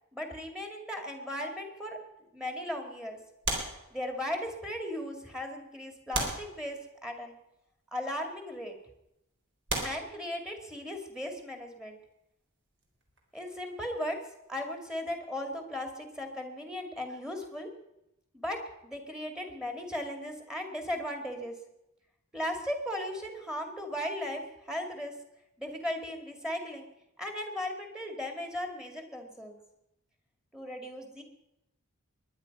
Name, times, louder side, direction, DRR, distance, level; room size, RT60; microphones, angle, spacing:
voice 1, 0.1-2.0 2.3-3.2 3.9-7.4 7.9-8.7 9.8-12.0 13.3-14.2 14.5-17.7 18.3-21.5 22.3-25.1 25.6-26.9 27.2-29.6 30.5-31.2, left 1 dB, 5° right, 4 dB, 2.2 m, -37 dB
sound 1, 3.4-4.5 5.3-5.4 6.1-7.2 8.2-8.4 9.0-9.1 9.7-10.9 12.8-14.6 14.8-15.0, right 2 dB, 55° right, 3.7 m, -37 dB
22.0 x 10.0 x 5.4 m, 0.86 s
head